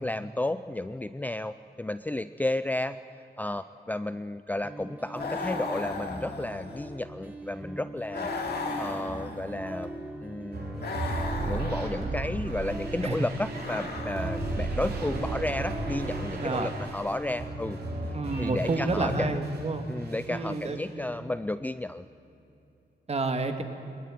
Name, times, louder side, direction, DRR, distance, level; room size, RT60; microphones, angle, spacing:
voice 1, 0.0-3.0 3.4-8.3 8.8-9.9 10.2-10.8 11.4-17.8 18.1-19.4 19.9-22.1, left 1 dB, 10° left, 12 dB, 0.5 m, -32 dB
sound 1, 4.6-22.6, right 1 dB, 10° right, 2.2 m, -42 dB
sound 2, 5.1-6.9 8.1-9.7 10.8-12.1 13.5-14.6, left 4 dB, 70° left, 3.0 m, -36 dB
sound 3, 10.5-19.7 20.0-20.8, right 2 dB, 70° right, 4.2 m, -35 dB
voice 2, 18.1-19.8 20.3-21.3 23.1-23.6, right 3 dB, 40° right, 7 dB, 2.0 m, -30 dB
21.0 x 21.0 x 9.3 m, 2.9 s
wide cardioid pair, 130°, 17 cm